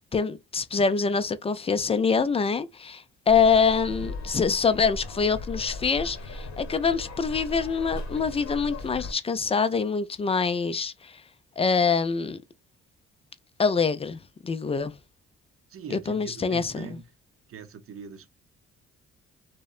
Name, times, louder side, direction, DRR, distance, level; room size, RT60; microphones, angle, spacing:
voice 1, 0.1-11.2 11.6-12.4 13.6-14.9 15.9-17.0, left 5 dB, 20° left, 0.3 m, -25 dB
sound 1, 3.3-9.1, left 2 dB, 60° left, 0.9 m, -37 dB
voice 2, 15.7-17.1 17.5-18.3, right 5 dB, 45° right, 0.6 m, -42 dB
2.7 x 2.1 x 2.3 m
supercardioid pair, 65°, 31 cm